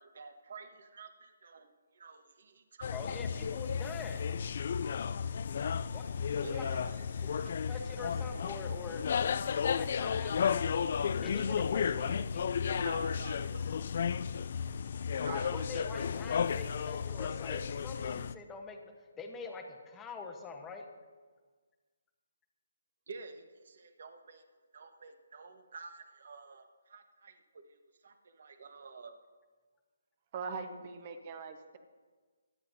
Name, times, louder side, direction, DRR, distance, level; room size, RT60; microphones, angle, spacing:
voice 1, 0.0-3.2 6.4-8.1 12.8-13.6 15.2-15.5 23.1-24.4 24.7-29.1, right 4 dB, 55° right, 7 dB, 1.2 m, -49 dB
sound 1, 2.8-18.3, left 7 dB, 40° left, 0.3 m, -33 dB
voice 2, 2.9-4.2 5.9-6.1 6.4-6.6 7.4-9.0 9.6-10.7 11.2-12.4 15.3-18.8 19.1-20.9, left 4 dB, 10° left, 3 dB, 1.0 m, -44 dB
voice 3, 30.3-31.8, right 5 dB, 25° right, 8 dB, 1.0 m, -41 dB
23.0 x 9.4 x 2.7 m, 1.4 s
hypercardioid pair, 170°, 0 cm